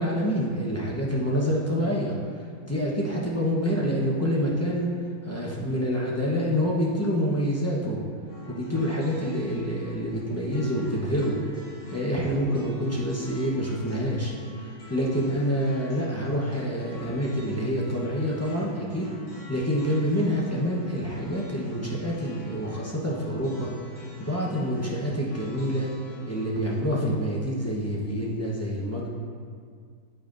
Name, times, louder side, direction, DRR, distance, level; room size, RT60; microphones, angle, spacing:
voice 1, 0.0-2.1 2.6-4.9 5.2-8.0 8.4-11.3 11.9-14.3 14.6-19.1 19.5-23.7 24.0-25.9 26.3-29.1, equal, 15° left, -6 dB, 0.5 m, -27 dB
sound 1, 8.3-26.8, left 1 dB, 80° left, 2.5 m, -44 dB
8.6 x 8.5 x 2.6 m, 2.1 s
omnidirectional pair, 1.9 m